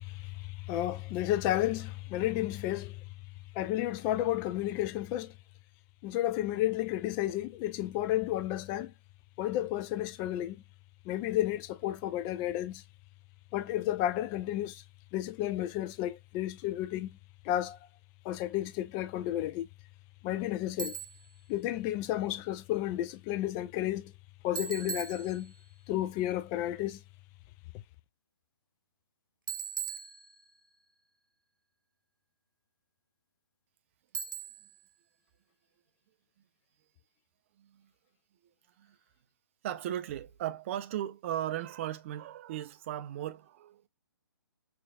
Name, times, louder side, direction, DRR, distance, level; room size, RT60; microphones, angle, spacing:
voice 1, 0.0-3.0 3.6-5.3 6.0-8.9 9.4-10.6 11.1-12.8 13.5-14.8 15.1-17.2 17.4-17.8 18.2-19.7 20.2-21.0 21.5-24.1 24.4-25.5 25.9-27.0, left 13 dB, 20° left, 0.3 m, -32 dB
Bicycle, 20.8-21.3 24.6-25.8 29.5-30.7 34.1-34.8, right 7 dB, 60° right, 0.9 m, -39 dB
voice 2, 37.6-37.9 38.8-39.0 39.6-43.9, right 12 dB, 35° right, 0.5 m, -37 dB
5.6 x 2.5 x 2.3 m
figure-of-eight pair, 130°, 12 cm